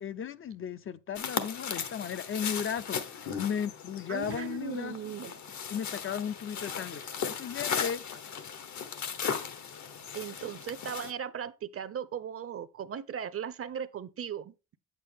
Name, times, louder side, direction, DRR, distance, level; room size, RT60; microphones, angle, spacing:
voice 1, 0.0-5.0 5.7-8.0, left 8 dB, 45° left, 0.5 m, -35 dB
sound 1, 1.2-11.1, left 7 dB, 70° left, 1.1 m, -37 dB
voice 2, 4.1-5.3 9.3-9.4 10.1-14.8, right 8 dB, 50° right, 0.7 m, -38 dB
8.3 x 7.5 x 3.5 m
cardioid pair, 125°, 30 cm